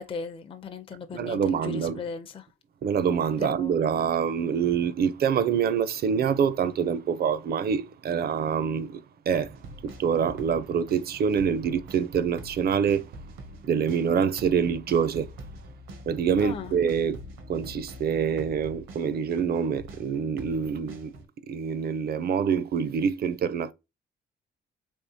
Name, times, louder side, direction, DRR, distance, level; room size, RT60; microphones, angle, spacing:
voice 1, 0.0-2.5 3.4-3.7 16.4-16.7, left 5 dB, 25° left, 0.5 m, -37 dB
voice 2, 1.1-2.1 2.8-13.3 13.6-15.4 16.1-17.2 17.5-21.2 21.5-23.7, right 7 dB, 50° right, 0.5 m, -26 dB
sound 1, 9.3-21.3, right 1 dB, 85° right, 1.0 m, -45 dB
3.5 x 3.2 x 2.7 m
cardioid pair, 90°, 20 cm